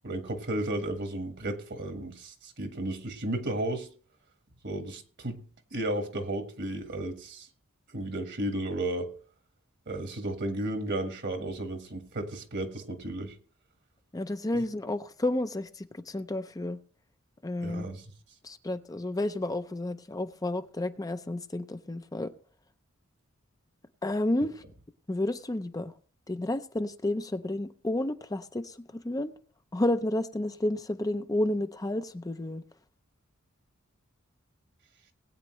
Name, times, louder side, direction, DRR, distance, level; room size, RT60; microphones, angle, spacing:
voice 1, 0.0-3.9 4.6-5.4 5.7-7.5 7.9-9.1 9.9-13.3 14.5-14.6 17.6-18.0, right 1 dB, 55° right, 1.5 m, -33 dB
voice 2, 14.1-16.8 17.4-17.9 18.4-22.3 24.0-24.6 25.1-25.9 26.3-29.3 29.7-32.6, left 1 dB, 15° left, 0.6 m, -31 dB
20.0 x 8.8 x 3.1 m
head